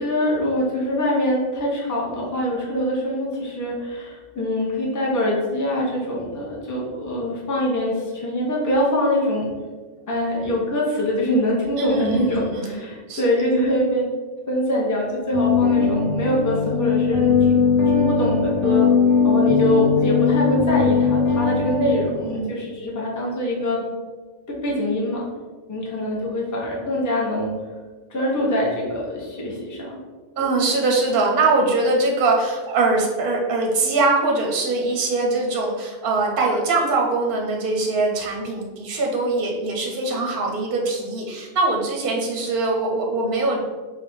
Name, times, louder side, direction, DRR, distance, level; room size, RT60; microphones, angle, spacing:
voice 1, 0.0-9.5 10.1-14.1 14.5-18.9 19.2-23.8 24.5-25.3 25.7-27.5 28.1-30.0 30.4-30.5, left 1 dB, 20° left, -5 dB, 0.7 m, -24 dB
voice 2, 11.8-13.2 22.1-22.4 30.4-43.6, right 3 dB, 55° right, 0 dB, 0.7 m, -22 dB
sound 1, 15.3-22.0, left 5 dB, 65° left, 1.3 m, -19 dB
3.4 x 2.5 x 4.2 m, 1.4 s
omnidirectional pair, 1.2 m